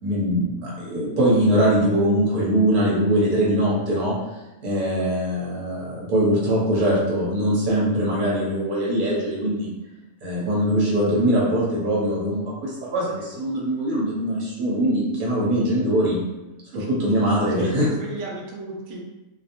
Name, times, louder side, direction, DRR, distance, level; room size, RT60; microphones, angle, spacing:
voice 1, 0.0-4.1 4.6-9.7 10.2-16.2 16.9-17.9, equal, 40° right, -6 dB, 0.9 m, -22 dB
voice 2, 16.7-17.4 17.8-19.0, right 2 dB, 70° right, -2 dB, 0.9 m, -34 dB
2.4 x 2.1 x 2.9 m, 1.0 s
omnidirectional pair, 1.4 m